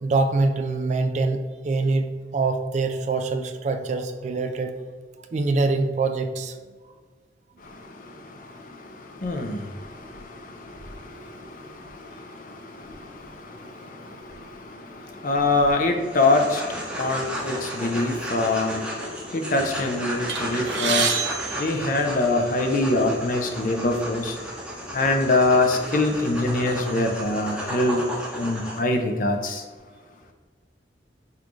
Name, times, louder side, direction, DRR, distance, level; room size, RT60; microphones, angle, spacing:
voice 1, 0.0-2.1 2.3-4.7 5.3-6.5 11.1-11.3, right 3 dB, 40° right, 7 dB, 0.3 m, -24 dB
voice 2, 9.2-9.7 15.2-16.6 17.0-18.9 19.3-21.1 21.6-24.3 24.9-28.0 28.4-29.6, left 2 dB, 50° left, 4 dB, 0.5 m, -23 dB
sound 1, 16.0-28.8, equal, 5° right, 0.7 m, -34 dB
sound 2, 20.3-22.6 23.5-23.6 23.9-24.1 24.9-25.1 25.6-26.7, right 6 dB, 80° right, 0.6 m, -29 dB
5.7 x 2.5 x 3.1 m, 1.5 s
head